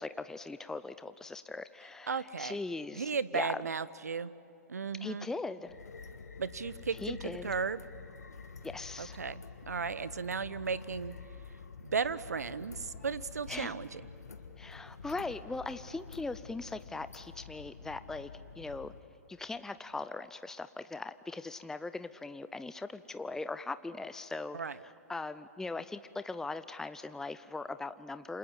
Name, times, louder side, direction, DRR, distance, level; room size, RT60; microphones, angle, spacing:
voice 1, 0.0-3.6 5.0-5.8 7.0-7.5 8.6-9.2 13.5-13.7 14.6-18.3 18.6-18.9 19.3-28.4, left 3 dB, 5° left, 12 dB, 0.6 m, -40 dB
voice 2, 2.1-2.6 2.9-4.3 4.7-5.3 6.4-7.8 9.0-11.1 11.9-14.0 24.5-24.8, right 5 dB, 80° right, 17 dB, 0.9 m, -35 dB
sound 1, 5.6-19.0, left 5 dB, 85° left, 1.5 m, -48 dB
28.5 x 26.5 x 7.7 m, 2.9 s
figure-of-eight pair, 110°, 9 cm